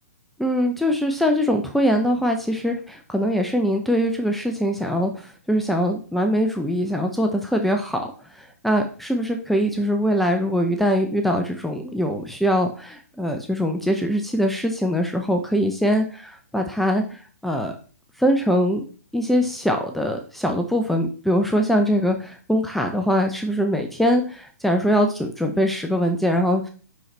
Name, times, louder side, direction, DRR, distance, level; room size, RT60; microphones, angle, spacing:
voice 1, 0.4-17.8 18.2-18.9 19.1-26.7, equal, ahead, 3 dB, 0.6 m, -22 dB
5.6 x 5.5 x 3.3 m, 0.38 s
figure-of-eight pair, 125°, 9 cm